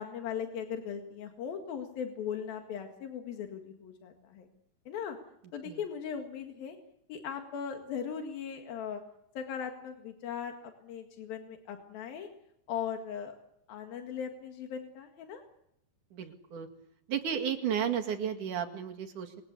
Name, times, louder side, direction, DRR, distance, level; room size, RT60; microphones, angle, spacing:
voice 1, 0.0-4.5 4.9-5.2 5.5-6.8 7.1-9.0 9.4-12.3 12.7-13.3 13.7-15.4, left 7 dB, 90° left, 4 dB, 3.8 m, -38 dB
voice 2, 16.1-16.7 17.1-19.4, right 8 dB, 65° right, 4 dB, 3.5 m, -33 dB
27.0 x 23.5 x 8.4 m, 0.77 s
omnidirectional pair, 4.0 m